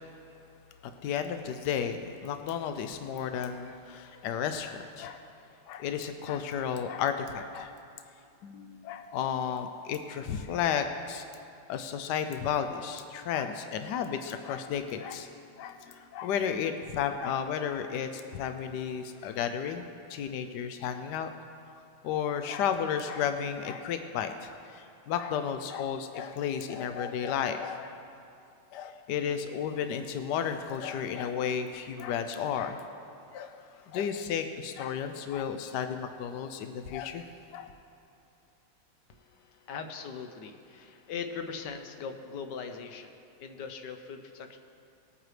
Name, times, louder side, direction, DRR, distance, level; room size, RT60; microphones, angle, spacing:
voice 1, 0.8-5.3 5.7-7.7 8.4-11.3 11.7-15.3 15.6-21.3 22.0-27.9 28.7-32.8 33.3-33.5 33.9-37.3 37.5-37.7, left 8 dB, 80° left, 8 dB, 0.9 m, -33 dB
voice 2, 39.1-44.6, left 6 dB, 65° left, 6 dB, 1.2 m, -40 dB
20.0 x 8.9 x 3.3 m, 2.5 s
omnidirectional pair, 2.4 m